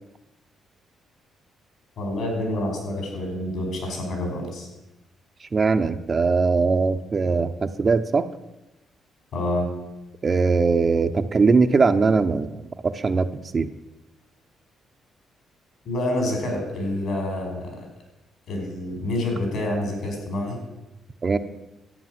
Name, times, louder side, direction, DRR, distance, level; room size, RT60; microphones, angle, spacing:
voice 1, 2.0-4.7 9.3-9.7 15.9-17.9 18.5-20.6, left 1 dB, 70° left, 3 dB, 5.2 m, -27 dB
voice 2, 5.5-8.3 10.2-13.3 13.5-13.7 21.2-21.4, right 4 dB, 35° right, 8 dB, 0.7 m, -21 dB
12.0 x 9.1 x 7.6 m, 1.0 s
cardioid pair, 90°, 0 cm